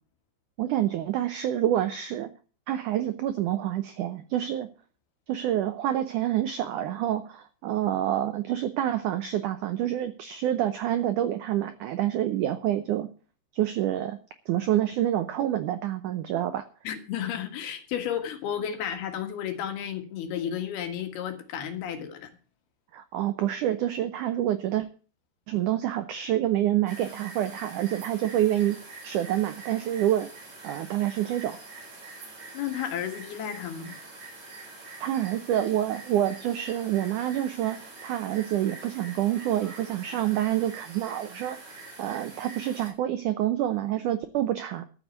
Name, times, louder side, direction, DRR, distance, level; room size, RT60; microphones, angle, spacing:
voice 1, 0.6-2.3 2.7-4.7 5.3-13.1 13.5-14.2 14.5-16.6 22.9-24.9 25.5-28.8 29.0-30.3 30.6-31.6 35.0-41.6 42.0-44.8, right 12 dB, 80° right, 10 dB, 1.8 m, -27 dB
voice 2, 16.9-22.3 32.5-34.0, left 9 dB, 75° left, 7 dB, 3.5 m, -32 dB
sound 1, 26.9-42.9, right 3 dB, 45° right, 5.6 m, -45 dB
13.5 x 6.5 x 8.0 m, 0.38 s
omnidirectional pair, 4.7 m